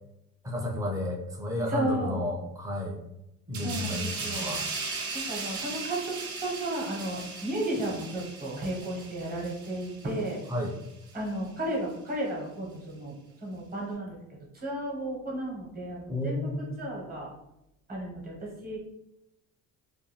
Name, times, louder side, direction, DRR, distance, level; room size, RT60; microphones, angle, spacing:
voice 1, 0.4-3.0 3.5-4.6 10.5-10.8 16.1-16.8, left 1 dB, 10° right, -1 dB, 0.5 m, -32 dB
voice 2, 1.7-2.2 3.6-4.6 5.1-6.0 6.4-10.4 11.1-13.1 13.4-14.2 14.5-17.3 17.9-18.8, right 1 dB, 25° right, -3 dB, 1.0 m, -33 dB
sound 1, 3.5-10.7 11.1-11.3, right 4 dB, 55° right, 0.8 m, -37 dB
2.5 x 2.2 x 3.1 m, 0.86 s
cardioid pair, 120°, 35 cm